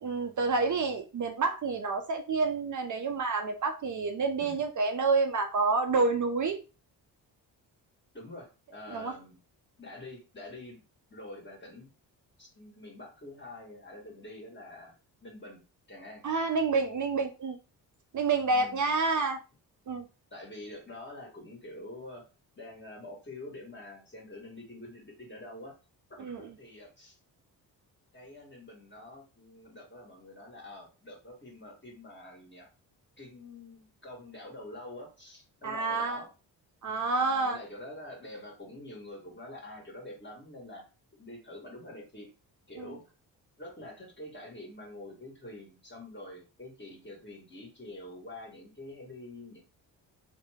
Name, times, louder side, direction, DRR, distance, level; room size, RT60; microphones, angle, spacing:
voice 1, 0.0-6.6 8.9-9.1 16.2-17.6 18.1-19.4 19.9-20.0 26.2-26.4 35.6-36.2 36.8-37.6 42.8-42.9, right 4 dB, 40° right, 0.5 m, -28 dB
voice 2, 8.1-9.4 9.8-10.8 11.1-11.9 12.4-14.9 15.2-15.6 15.9-16.2 18.5-18.8 20.3-22.2 22.5-25.8 26.1-27.2 28.1-32.7 33.2-36.3 37.1-40.9 41.2-42.3 42.7-43.0 43.6-49.6, left 1 dB, 25° left, 1.5 m, -46 dB
2.8 x 2.1 x 3.4 m
supercardioid pair, 50°, 45 cm